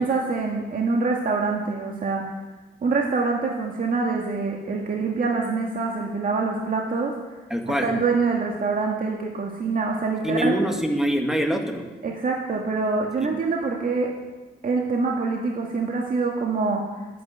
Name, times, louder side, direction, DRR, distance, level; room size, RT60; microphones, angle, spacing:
voice 1, 0.0-2.2 2.8-7.1 7.8-10.5 12.0-14.1 14.6-16.8, right 4 dB, 45° right, 0 dB, 1.9 m, -25 dB
voice 2, 7.5-7.9 10.2-11.8 13.2-13.3, equal, ahead, 3 dB, 2.2 m, -24 dB
13.5 x 9.5 x 8.2 m, 1.2 s
cardioid pair, 90°, 20 cm